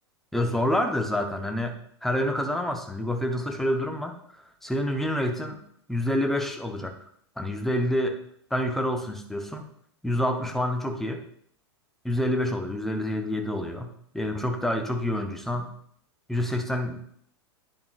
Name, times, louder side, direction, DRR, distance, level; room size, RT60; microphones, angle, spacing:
voice 1, 0.3-1.8 2.0-4.2 4.6-5.6 5.9-6.9 7.4-8.2 8.5-9.7 10.0-11.2 12.0-15.7 16.3-17.0, left 1 dB, ahead, 5 dB, 0.9 m, -27 dB
10.0 x 7.1 x 2.4 m, 0.67 s
figure-of-eight pair, 95°, 15 cm